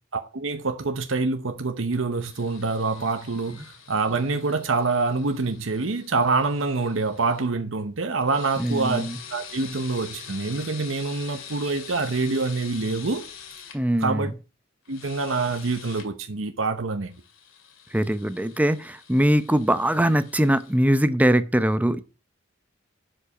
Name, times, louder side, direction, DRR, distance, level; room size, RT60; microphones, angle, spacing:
voice 1, 0.1-13.2 14.0-14.3 14.9-17.1, right 3 dB, 75° right, 1.0 m, -26 dB
sound 1, 2.2-7.5 8.2-13.8 14.9-16.1 17.1-20.8, left 7 dB, 90° left, 2.4 m, -45 dB
voice 2, 8.6-9.2 13.7-14.3 17.9-22.0, right 1 dB, 10° right, 0.7 m, -22 dB
11.5 x 5.4 x 4.8 m
head